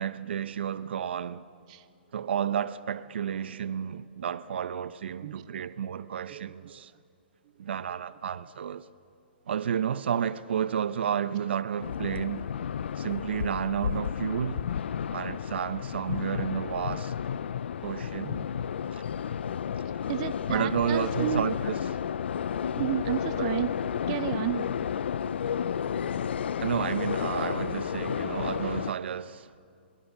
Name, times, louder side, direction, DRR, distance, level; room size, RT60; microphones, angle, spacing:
voice 1, 0.0-1.4 2.1-6.9 7.6-8.9 9.5-12.4 13.0-14.6 15.1-17.1 17.8-18.4 18.9-19.0 20.5-21.7 23.4-23.5 26.6-29.6, right 8 dB, 70° right, 0.9 m, -31 dB
voice 2, 5.2-5.6 6.3-6.9 7.5-7.6 11.6-11.8 18.2-18.5 19.8-21.5 22.8-23.7 24.1-24.7, right 13 dB, 40° right, 0.6 m, -33 dB
sound 1, 11.8-28.9, left 8 dB, 75° left, 0.5 m, -32 dB
23.5 x 22.0 x 7.3 m
hypercardioid pair, 145°, 6 cm